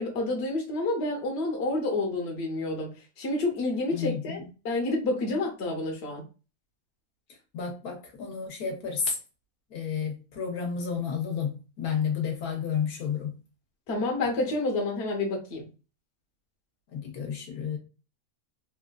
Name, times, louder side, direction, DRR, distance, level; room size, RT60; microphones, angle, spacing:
voice 1, 0.0-2.9 3.2-6.2 13.9-15.7, left 2 dB, 50° left, 1.1 m, -29 dB
voice 2, 3.9-4.4 7.5-9.2 9.7-11.5 11.8-13.3 16.9-17.8, left 7 dB, 90° left, 1.4 m, -31 dB
3.3 x 2.4 x 2.3 m
omnidirectional pair, 1.6 m